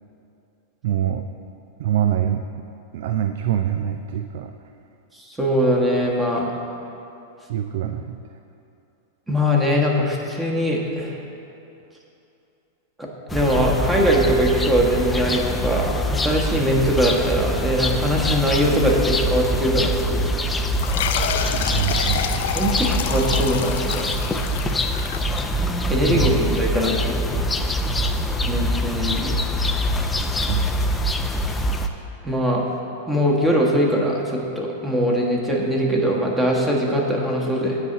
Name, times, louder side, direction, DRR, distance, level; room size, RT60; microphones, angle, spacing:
voice 1, 0.8-1.3 1.8-2.4 2.9-4.5 7.5-8.2 21.7-22.5 26.1-26.4 30.5-30.6, right 10 dB, 65° right, 7 dB, 0.4 m, -24 dB
voice 2, 5.3-6.5 9.3-11.1 13.0-20.3 22.5-24.3 25.9-27.2 28.4-29.4 32.2-32.6 33.1-37.8, equal, 10° right, -2 dB, 1.3 m, -21 dB
sound 1, 13.3-31.9, equal, 10° left, 0.5 m, -24 dB
sound 2, 20.8-25.9, left 8 dB, 70° left, 0.5 m, -28 dB
9.5 x 4.2 x 7.2 m, 2.8 s
hypercardioid pair, 130°, 0 cm